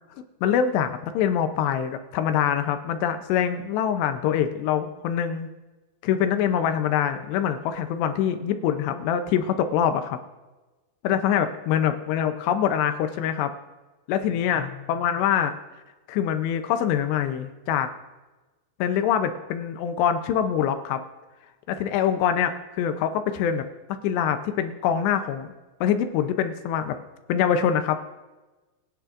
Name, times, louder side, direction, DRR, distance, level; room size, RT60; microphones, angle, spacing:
voice 1, 0.4-5.5 6.0-10.2 11.0-13.5 14.1-15.5 16.1-17.9 18.8-21.0 21.7-23.7 24.0-25.5 25.8-27.0 27.3-28.0, left 9 dB, 80° left, 8 dB, 2.8 m, -24 dB
25.5 x 9.7 x 2.5 m, 1.2 s
omnidirectional pair, 5.1 m